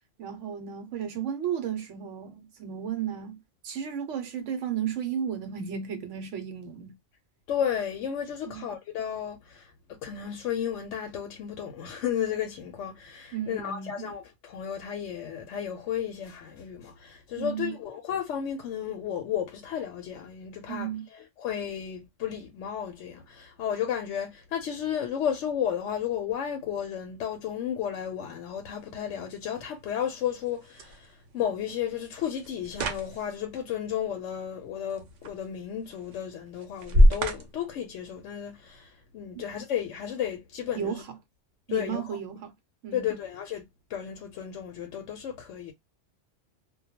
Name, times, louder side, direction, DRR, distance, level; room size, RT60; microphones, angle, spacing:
voice 1, 0.2-6.9 8.5-8.7 13.3-14.1 17.4-17.7 20.7-21.1 40.7-41.0 41.7-42.5 42.8-43.2, right 8 dB, 75° right, 1.0 m, -34 dB
voice 2, 7.5-9.7 10.0-41.0 41.7-42.0 42.9-43.6 43.9-45.7, left 9 dB, 75° left, 0.9 m, -33 dB
sound 1, 27.8-38.8, equal, 60° right, 0.4 m, -30 dB
2.2 x 2.2 x 2.8 m
omnidirectional pair, 1.3 m